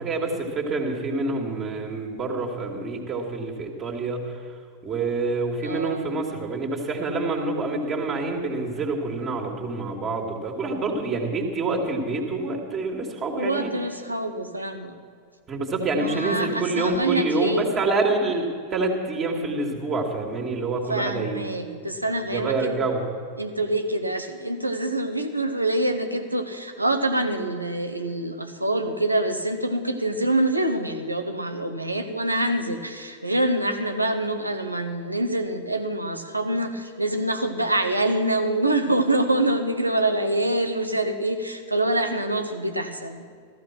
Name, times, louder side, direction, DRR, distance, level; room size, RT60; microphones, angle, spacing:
voice 1, 0.0-4.5 4.8-13.7 15.5-21.5 22.3-23.1, right 3 dB, 30° right, 1 dB, 2.5 m, -27 dB
voice 2, 5.6-6.1 13.4-15.0 16.0-17.7 20.9-22.8 23.4-43.3, right 1 dB, 85° right, 7 dB, 1.2 m, -25 dB
15.5 x 14.5 x 6.0 m, 2.2 s
figure-of-eight pair, 90°, 0 cm